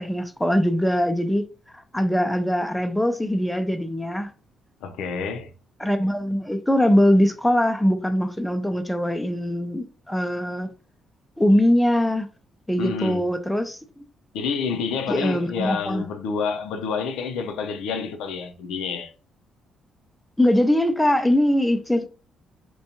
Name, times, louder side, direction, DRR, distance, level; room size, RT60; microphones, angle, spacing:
voice 1, 0.0-1.4 1.7-4.3 5.8-10.7 11.4-12.3 12.7-13.8 15.1-16.0 20.4-22.1, equal, 5° left, 0.4 m, -22 dB
voice 2, 4.8-5.5 12.8-13.2 14.3-19.1, left 5 dB, 90° left, 0.4 m, -28 dB
2.5 x 2.2 x 2.8 m
cardioid pair, 90°, 0 cm